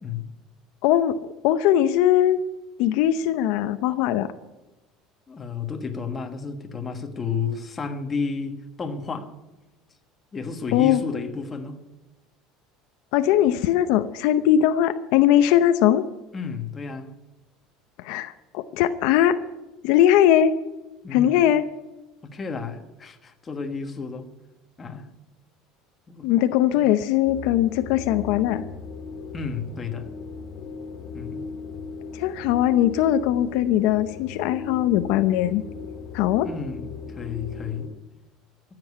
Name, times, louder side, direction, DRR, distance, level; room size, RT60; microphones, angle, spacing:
voice 1, 0.8-1.2 1.4-2.4 2.8-4.3 10.7-11.0 13.1-16.0 18.0-19.4 19.8-20.5 21.1-21.6 26.2-28.6 32.1-35.6 36.1-36.5, left 11 dB, 70° left, 0.7 m, -20 dB
voice 2, 5.3-9.3 10.3-11.8 16.3-17.1 21.0-21.4 22.2-24.3 24.8-25.1 26.1-26.3 26.7-26.8 29.3-30.1 31.1-31.4 36.4-37.9, left 5 dB, 20° left, 1.4 m, -32 dB
sound 1, 27.2-37.9, left 5 dB, 50° left, 2.1 m, -37 dB
14.5 x 7.8 x 9.8 m
cardioid pair, 155°, 0 cm